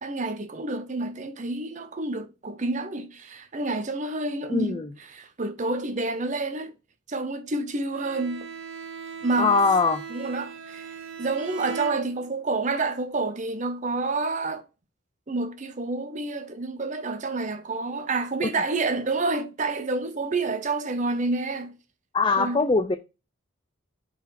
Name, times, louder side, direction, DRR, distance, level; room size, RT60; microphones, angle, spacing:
voice 1, 0.0-4.8 5.1-6.7 7.1-8.5 9.2-9.6 10.1-14.7 15.3-21.8 22.4-22.6, right 3 dB, 35° right, 0.7 m, -29 dB
voice 2, 4.5-4.9 9.4-10.0 18.4-18.5 22.1-23.0, left 4 dB, 25° left, 0.4 m, -22 dB
Bowed string instrument, 7.9-12.5, right 6 dB, 75° right, 1.1 m, -39 dB
5.4 x 4.1 x 4.6 m
head